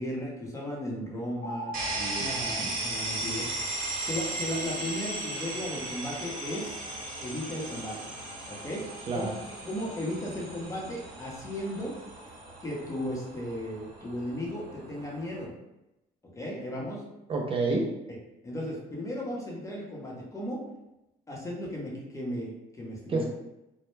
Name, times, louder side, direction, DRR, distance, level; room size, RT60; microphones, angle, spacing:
voice 1, 0.0-2.4 2.8-3.5 4.0-6.8 7.2-8.1 8.5-8.9 9.1-9.3 9.7-12.0 12.6-15.5 16.3-17.0 18.4-20.6 21.3-23.2, equal, 20° left, -3 dB, 0.8 m, -35 dB
sound 1, 1.4-3.9, right 1 dB, 85° left, 0.5 m, -41 dB
sound 2, 1.7-15.4, right 2 dB, 55° right, 0.9 m, -37 dB
voice 2, 2.2-2.7 9.1-9.3 17.3-17.9 23.1-23.2, right 3 dB, 30° right, -1 dB, 0.4 m, -29 dB
2.1 x 2.0 x 3.1 m, 0.92 s
cardioid pair, 110°, 17 cm